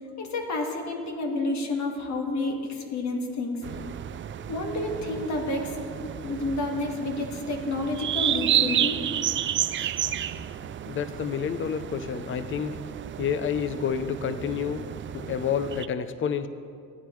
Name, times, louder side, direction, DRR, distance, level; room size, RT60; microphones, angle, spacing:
voice 1, 0.2-3.6 4.5-5.8 6.0-9.0, left 2 dB, 65° left, 1 dB, 1.9 m, -30 dB
sound 1, 3.6-15.9, right 10 dB, 40° right, 0.4 m, -31 dB
voice 2, 10.9-12.8 13.2-14.8 15.1-16.5, left 7 dB, 45° left, 11 dB, 0.6 m, -29 dB
16.0 x 9.8 x 3.2 m, 2.3 s
cardioid pair, 90°, 30 cm